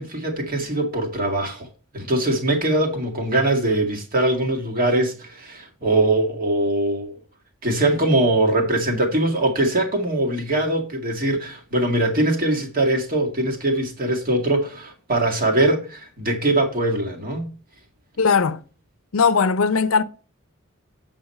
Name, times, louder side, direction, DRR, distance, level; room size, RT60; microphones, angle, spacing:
voice 1, 0.0-1.7 1.9-7.2 7.6-17.5, right 1 dB, 40° right, 2.0 m, -22 dB
voice 2, 18.2-18.6 19.1-20.0, left 5 dB, 75° left, 0.6 m, -18 dB
7.9 x 6.4 x 4.3 m
head